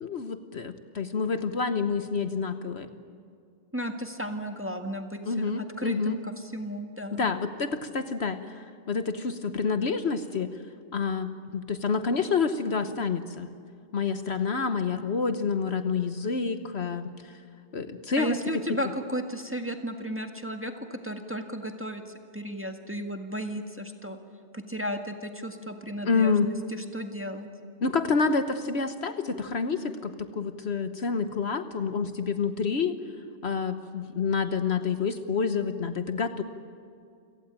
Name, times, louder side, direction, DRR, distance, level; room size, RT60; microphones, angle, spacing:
voice 1, 0.0-2.9 5.3-6.2 7.2-8.4 8.9-10.5 10.9-13.5 13.9-17.1 17.7-18.6 26.0-26.5 27.8-32.9 33.4-36.4, left 5 dB, 55° left, 9 dB, 1.2 m, -28 dB
voice 2, 3.7-7.3 18.2-22.0 22.3-24.2 24.5-27.5, equal, 10° right, 5 dB, 1.7 m, -34 dB
28.0 x 17.5 x 8.9 m, 2.4 s
omnidirectional pair, 1.3 m